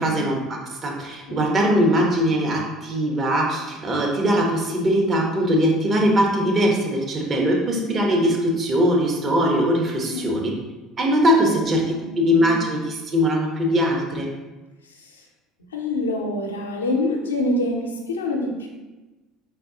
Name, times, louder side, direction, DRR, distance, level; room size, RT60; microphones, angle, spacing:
voice 1, 0.0-10.5 11.0-14.3, equal, 35° right, 0 dB, 1.0 m, -21 dB
voice 2, 1.3-1.9 10.1-10.5 11.4-12.6 14.8-15.3 15.7-18.7, left 1 dB, 85° left, 1 dB, 0.6 m, -27 dB
4.6 x 4.0 x 2.8 m, 1.1 s
hypercardioid pair, 65°, 0 cm